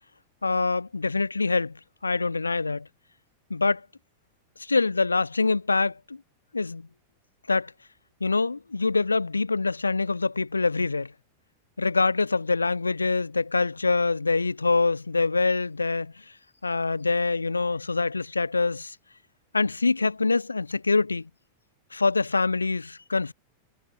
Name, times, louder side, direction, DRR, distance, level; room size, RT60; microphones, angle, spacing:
voice 1, 0.4-2.9 3.5-3.9 4.6-6.2 6.5-6.9 7.5-7.7 8.2-11.1 11.8-16.2 16.6-19.0 19.5-21.3 21.9-23.3, left 3 dB, 80° left, 5.3 m, -25 dB
figure-of-eight pair, 90°, 0 cm